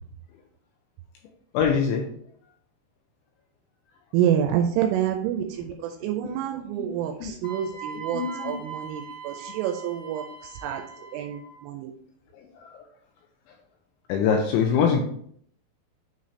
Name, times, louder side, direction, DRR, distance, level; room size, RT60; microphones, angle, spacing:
voice 1, 1.5-2.0 6.8-6.9 7.2-7.3 8.1-8.5 12.6-12.7 14.1-15.0, left 6 dB, 85° left, 3 dB, 2.7 m, -23 dB
voice 2, 4.1-10.8 11.1-11.9, right 10 dB, 85° right, 4 dB, 3.0 m, -28 dB
Wind instrument woodwind instrument, 7.4-11.6, right 6 dB, 35° left, 2.5 m, -40 dB
9.0 x 4.1 x 3.1 m, 0.64 s
omnidirectional pair, 5.9 m